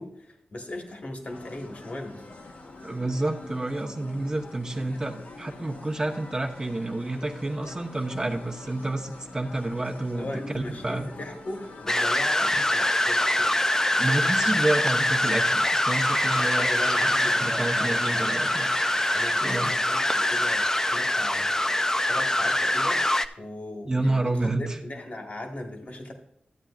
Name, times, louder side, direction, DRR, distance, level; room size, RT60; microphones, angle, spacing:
voice 1, 0.0-2.2 10.1-13.5 16.6-18.6 19.1-23.0 23.4-26.1, left 1 dB, 50° left, 2 dB, 1.6 m, -38 dB
sound 1, 1.3-11.9, left 2 dB, 70° left, 1.4 m, -44 dB
voice 2, 2.8-10.3 10.5-11.1 14.0-16.7 17.0-17.1 17.4-18.7 19.4-19.7 23.8-24.8, right 2 dB, 25° right, 1 dB, 0.9 m, -29 dB
sound 2, 11.9-23.3, left 1 dB, 20° left, 0.4 m, -24 dB
sound 3, 16.0-19.7, right 2 dB, 45° right, 1.3 m, -37 dB
14.5 x 8.9 x 2.4 m, 0.73 s
wide cardioid pair, 95°, 3 cm